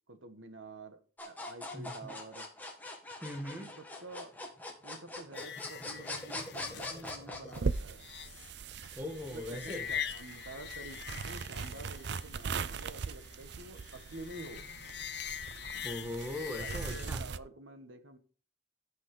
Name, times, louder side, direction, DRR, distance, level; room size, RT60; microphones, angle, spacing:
voice 1, 0.1-1.0 1.2-2.5 3.5-4.3 4.8-8.1 9.3-14.6 16.6-18.2, right 2 dB, 80° right, 1.6 m, -49 dB
sound 1, 1.2-7.6, left 2 dB, 10° left, 1.9 m, -42 dB
voice 2, 1.7-2.1 3.2-3.7 9.0-9.9 15.7-17.2, left 1 dB, 10° right, 1.8 m, -40 dB
sound 2, 5.3-17.1, left 9 dB, 55° left, 0.7 m, -44 dB
sound 3, 7.5-17.4, right 5 dB, 55° right, 0.5 m, -40 dB
16.0 x 6.2 x 3.8 m
head